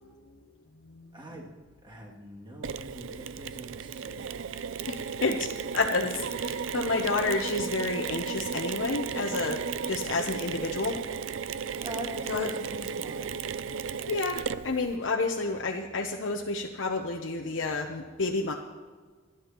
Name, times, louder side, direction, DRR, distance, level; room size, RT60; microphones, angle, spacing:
voice 1, 1.1-1.5 1.8-4.3 11.8-13.3, equal, 25° right, -3 dB, 2.5 m, -42 dB
Mechanisms, 2.6-15.0, right 6 dB, 85° right, 0.5 m, -34 dB
voice 2, 4.9-11.0 12.3-12.5 14.1-18.5, left 3 dB, 75° left, 1 dB, 0.8 m, -30 dB
30.0 x 11.0 x 3.0 m, 1.5 s
head